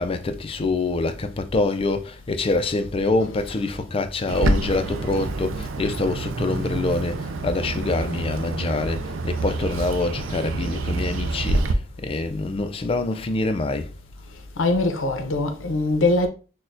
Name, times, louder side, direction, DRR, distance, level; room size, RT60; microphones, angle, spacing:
voice 1, 0.0-13.9, left 3 dB, 30° left, 0.3 m, -25 dB
Bird, 4.3-11.7, right 2 dB, 85° right, 0.4 m, -27 dB
voice 2, 14.6-16.3, left 2 dB, 85° left, 0.7 m, -22 dB
6.1 x 2.2 x 2.6 m
head